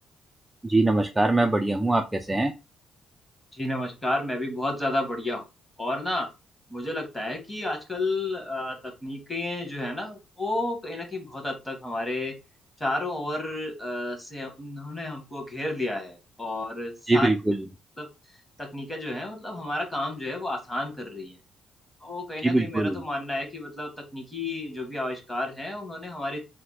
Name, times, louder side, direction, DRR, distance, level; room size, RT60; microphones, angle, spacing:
voice 1, 0.6-2.5 17.1-17.6 22.4-23.0, right 2 dB, 10° right, 4 dB, 0.3 m, -23 dB
voice 2, 3.5-5.4 5.8-6.3 6.7-12.3 12.8-17.3 18.0-18.1 18.6-21.4 22.0-26.4, left 2 dB, 15° left, 3 dB, 1.2 m, -31 dB
3.3 x 2.1 x 3.2 m, 0.27 s
cardioid pair, 90°, 0 cm